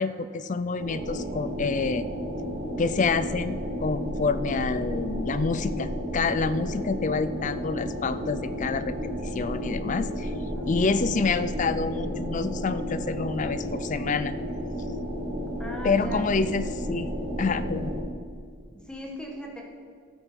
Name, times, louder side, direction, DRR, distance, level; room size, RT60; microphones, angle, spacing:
voice 1, 0.0-2.1 2.8-9.0 9.2-10.3 10.6-14.3 15.8-17.1 17.4-17.9, left 4 dB, 35° left, 14 dB, 0.4 m, -27 dB
sound 1, 0.8-18.0, equal, 80° right, 2.9 m, -32 dB
voice 2, 15.6-16.2 18.7-19.6, equal, 5° left, -1 dB, 1.6 m, -39 dB
13.0 x 8.5 x 5.3 m, 2.1 s
head